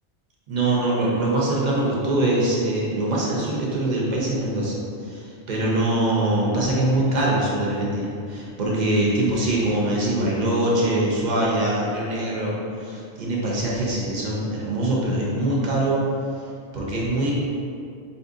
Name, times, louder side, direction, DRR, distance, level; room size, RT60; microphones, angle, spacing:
voice 1, 0.5-16.0 16.7-17.3, right 1 dB, 50° right, -4 dB, 0.6 m, -23 dB
4.2 x 2.6 x 2.5 m, 2.4 s
omnidirectional pair, 1.2 m